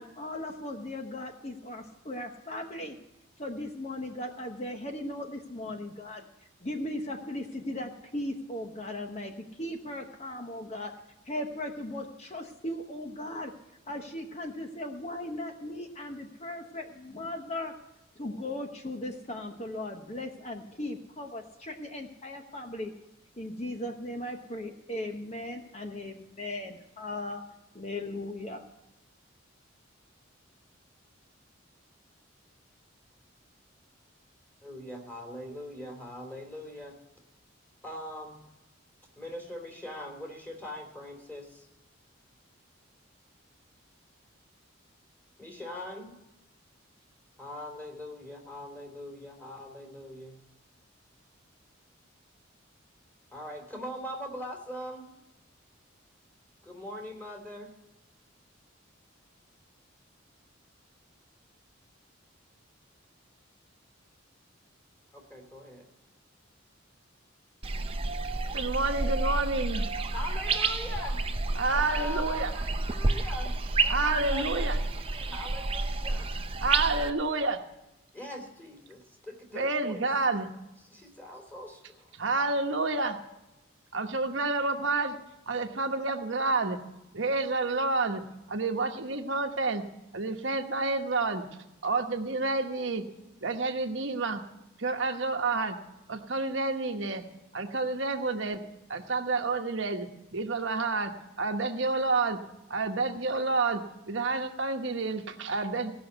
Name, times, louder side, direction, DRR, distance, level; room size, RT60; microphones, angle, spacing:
voice 1, 0.0-3.0 3.4-6.3 6.6-10.9 11.2-13.5 13.9-17.7 18.2-22.9 23.4-27.4 27.7-28.6, left 1 dB, 30° left, 4 dB, 1.0 m, -37 dB
voice 2, 34.6-37.0 37.8-38.4 39.2-41.7 45.4-46.2 47.4-50.4 53.3-55.1 56.6-57.7 65.1-65.9 70.1-71.3 71.8-76.3 77.0-77.1 78.1-80.1 80.9-82.1, left 1 dB, 10° left, 0 dB, 2.8 m, -41 dB
sound 1, 67.6-77.1, right 3 dB, 25° right, 0.6 m, -30 dB
voice 3, 68.5-69.8 71.5-72.5 73.9-74.8 76.6-77.6 79.5-80.5 82.1-83.2 83.9-85.2 85.5-86.8 87.1-88.2 88.5-89.8 90.1-91.4 91.8-93.0 93.4-94.4 94.8-95.8 96.1-97.2 97.5-98.6 98.9-101.1 101.4-102.4 102.7-105.9, right 3 dB, 65° right, 4 dB, 1.1 m, -29 dB
17.5 x 6.3 x 7.9 m, 0.94 s
head